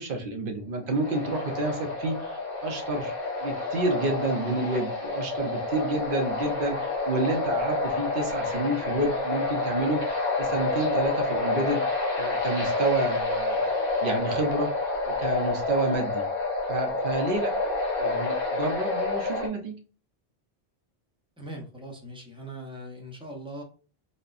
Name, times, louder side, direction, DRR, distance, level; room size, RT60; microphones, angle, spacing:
voice 1, 0.0-3.1 3.4-11.8 12.2-13.7 14.0-14.7 15.1-16.2 16.7-17.5 18.0-19.7, right 2 dB, 60° right, 3 dB, 0.8 m, -29 dB
sound 1, 0.9-19.5, left 3 dB, 35° left, 1.0 m, -29 dB
voice 2, 21.4-23.6, right 1 dB, 5° right, -1 dB, 0.7 m, -40 dB
4.1 x 2.1 x 2.4 m, 0.38 s
omnidirectional pair, 1.1 m